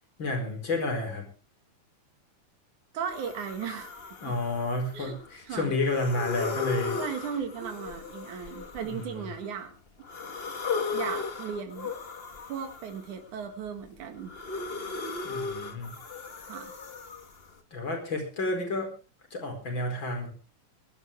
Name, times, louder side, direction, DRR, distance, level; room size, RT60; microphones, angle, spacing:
voice 1, 0.2-1.3 4.2-7.0 8.8-9.3 15.2-15.9 17.7-18.9 19.3-20.3, left 2 dB, 40° left, 3 dB, 5.3 m, -30 dB
voice 2, 2.9-4.0 4.9-5.2 5.5-5.7 7.0-9.8 10.9-11.9 12.5-14.3 16.4-16.8, right 7 dB, 90° right, 6 dB, 3.3 m, -36 dB
sound 1, 3.1-5.3 5.8-9.5 10.0-13.2 13.7-17.5, left 4 dB, 85° left, 0.5 m, -36 dB
22.5 x 12.5 x 3.5 m, 0.33 s
omnidirectional pair, 3.4 m